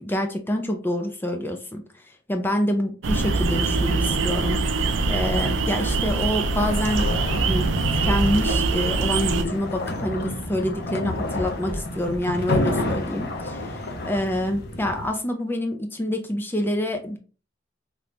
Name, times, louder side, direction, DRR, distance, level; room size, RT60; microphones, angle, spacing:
voice 1, 0.0-1.8 2.3-4.6 5.1-7.1 7.4-17.2, left 1 dB, 10° left, 4 dB, 0.4 m, -27 dB
sound 1, 3.0-9.4, right 3 dB, 80° right, 0.4 m, -23 dB
sound 2, 6.6-15.1, left 1 dB, 55° left, 0.7 m, -30 dB
3.4 x 2.9 x 2.4 m, 0.36 s
head